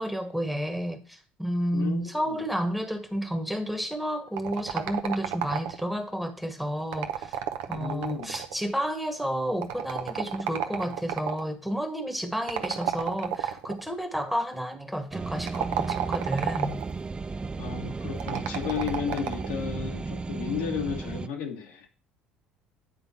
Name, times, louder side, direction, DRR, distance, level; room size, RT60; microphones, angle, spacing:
voice 1, 0.0-7.4 7.7-16.7, equal, ahead, 1.3 m, -31 dB
voice 2, 1.7-2.4 7.7-8.3 17.6-21.9, left 7 dB, 75° left, 1.6 m, -33 dB
sound 1, 4.4-6.0 6.8-8.7 9.6-11.5 12.5-13.8 15.4-16.9 18.2-19.5, right 10 dB, 75° right, 0.8 m, -31 dB
sound 2, 15.1-21.3, right 4 dB, 20° right, 0.4 m, -34 dB
9.1 x 3.9 x 5.5 m
hypercardioid pair, 65°, 4 cm